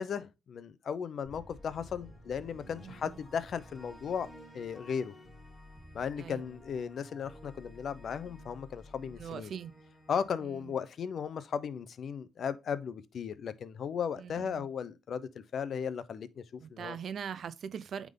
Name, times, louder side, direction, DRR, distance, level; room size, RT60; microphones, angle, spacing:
voice 1, 0.0-4.3 4.5-5.1 5.9-9.5 10.1-17.0, left 7 dB, 55° left, 0.6 m, -36 dB
sound 1, 1.2-11.4, left 1 dB, 20° left, 3.0 m, -53 dB
voice 2, 2.8-3.2 6.2-6.4 9.2-9.7 10.4-10.7 14.2-14.6 16.6-18.1, right 7 dB, 60° right, 0.5 m, -41 dB
9.0 x 3.7 x 3.7 m
cardioid pair, 90°, 0 cm